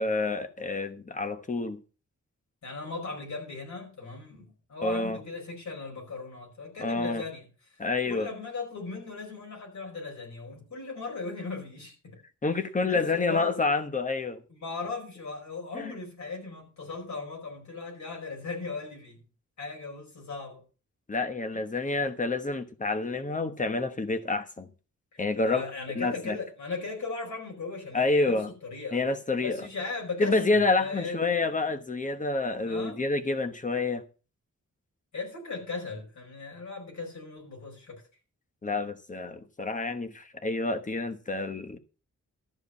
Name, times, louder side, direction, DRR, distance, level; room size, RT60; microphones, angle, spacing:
voice 1, 0.0-1.8 4.8-5.2 6.8-7.2 7.8-8.3 12.4-14.4 15.7-15.9 21.1-24.7 25.2-25.6 25.9-26.4 27.9-28.5 28.9-29.6 30.2-34.0 38.6-41.8, left 3 dB, 25° left, 1.2 m, -28 dB
voice 2, 2.6-7.4 7.7-12.2 12.6-13.6 14.5-19.2 19.6-20.6 21.5-21.6 25.1-29.0 29.4-30.4 30.8-31.2 32.7-33.0 35.1-38.0, left 4 dB, 70° left, 5.1 m, -38 dB
13.0 x 4.8 x 8.2 m
wide cardioid pair, 150°, 30 cm